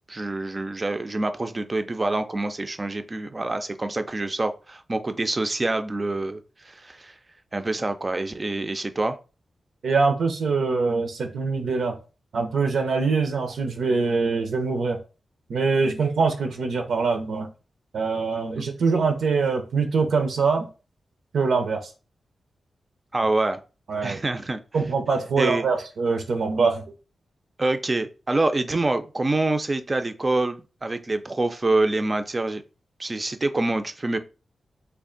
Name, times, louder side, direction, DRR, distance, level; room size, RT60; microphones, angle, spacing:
voice 1, 0.1-7.1 7.5-9.2 23.1-23.6 24.0-24.6 25.4-25.6 27.6-32.6 33.0-34.2, right 2 dB, 25° right, 9 dB, 0.4 m, -26 dB
voice 2, 9.8-12.0 12.3-15.0 15.5-17.5 17.9-20.7 21.3-21.9 23.9-24.2 24.7-26.8, right 4 dB, 75° right, 5 dB, 0.6 m, -23 dB
3.4 x 2.4 x 3.8 m, 0.33 s
wide cardioid pair, 140°, 0 cm